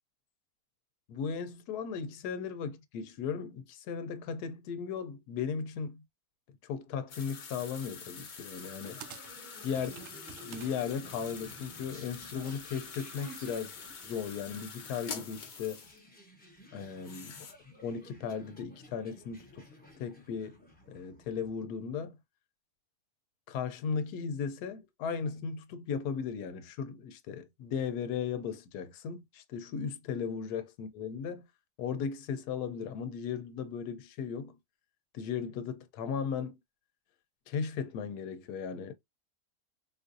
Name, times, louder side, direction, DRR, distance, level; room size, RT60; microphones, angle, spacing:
voice 1, 1.1-6.0 6.7-9.0 9.6-9.9 10.5-13.8 14.0-15.8 16.7-17.4 17.8-19.7 20.0-20.6 20.9-22.2 23.5-31.5 31.8-34.6 35.1-36.6 37.5-38.9, left 6 dB, 85° left, 1.2 m, -36 dB
sound 1, 7.1-16.0 16.9-17.5, left 5 dB, 55° left, 0.5 m, -46 dB
sound 2, 8.6-8.7 9.0-10.7 11.1-13.5, right 9 dB, 70° right, 0.8 m, -49 dB
sound 3, 8.8-21.5, left 1 dB, 10° left, 0.7 m, -55 dB
3.7 x 2.5 x 2.6 m
omnidirectional pair, 1.6 m